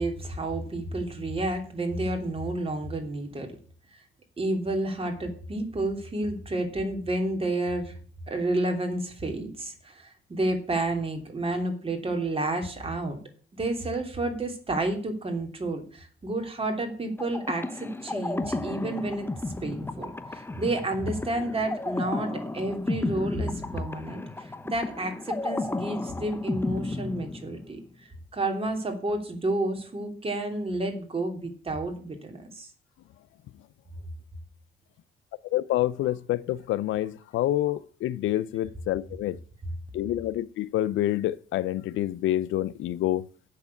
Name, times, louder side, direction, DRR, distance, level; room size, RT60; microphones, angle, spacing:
voice 1, 0.0-3.5 3.9-4.0 4.4-7.9 8.3-13.2 13.5-19.3 19.6-24.2 24.6-27.8 28.3-32.7 37.7-37.8, right 2 dB, 30° right, 3.0 m, -30 dB
sound 1, 17.2-27.9, left 2 dB, 10° left, 0.8 m, -33 dB
voice 2, 35.5-39.4 39.9-43.2, left 14 dB, 80° left, 0.5 m, -27 dB
8.0 x 6.8 x 8.3 m
cardioid pair, 90°, 20 cm